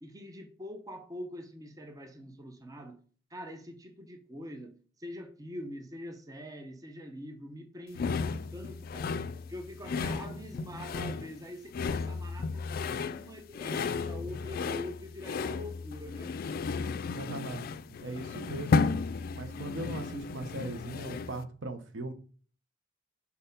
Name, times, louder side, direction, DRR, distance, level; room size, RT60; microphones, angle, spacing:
voice 1, 0.0-3.0 3.3-9.2 9.5-16.6, left 1 dB, 20° right, 0.7 m, -44 dB
sound 1, 7.9-21.4, left 4 dB, 50° left, 0.3 m, -34 dB
voice 2, 17.2-17.6 18.0-19.0 19.3-22.1, right 2 dB, 80° right, 0.8 m, -39 dB
4.5 x 4.1 x 5.2 m
head